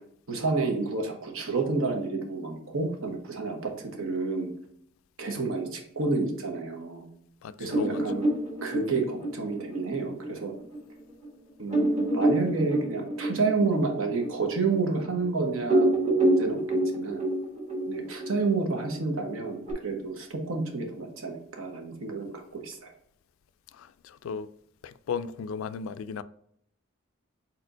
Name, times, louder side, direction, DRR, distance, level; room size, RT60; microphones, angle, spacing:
voice 1, 0.3-4.5 5.2-7.1 7.6-8.3 8.6-10.5 11.6-16.6 16.9-17.2 17.9-22.9, right 3 dB, 85° right, 1.1 m, -30 dB
voice 2, 7.4-8.1 23.7-24.5 24.8-26.2, left 6 dB, 85° left, 0.3 m, -36 dB
sound 1, 7.7-10.8 11.2-11.3 11.7-15.3 15.6-19.7, right 1 dB, 30° right, 1.1 m, -27 dB
4.4 x 4.1 x 2.6 m
head